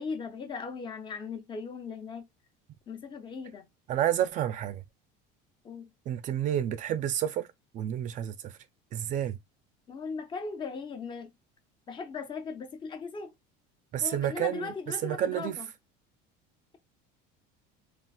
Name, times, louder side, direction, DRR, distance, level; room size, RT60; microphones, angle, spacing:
voice 1, 0.0-2.3 2.9-3.6 5.6-5.9 9.9-11.3 11.9-13.3 14.0-15.7, left 5 dB, 25° left, 0.6 m, -38 dB
voice 2, 3.9-4.8 6.1-7.5 7.7-8.5 8.9-9.4 13.9-14.7 15.0-15.6, right 11 dB, 40° right, 0.4 m, -29 dB
3.9 x 2.4 x 2.3 m
cardioid pair, 145°, 21 cm